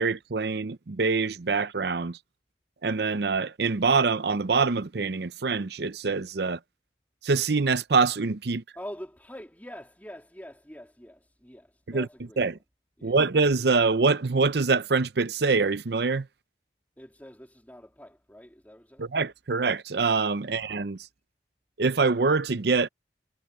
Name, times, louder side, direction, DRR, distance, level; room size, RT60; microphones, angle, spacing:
voice 1, 0.0-2.2 2.8-6.6 7.2-8.6 11.9-12.1 12.4-12.5 13.0-16.3 19.0-21.0 21.8-22.9, right 4 dB, 65° right, 0.6 m, -25 dB
voice 2, 8.7-12.6 13.0-13.2 17.0-19.1 20.4-20.5, equal, 10° left, 3.3 m, -45 dB
head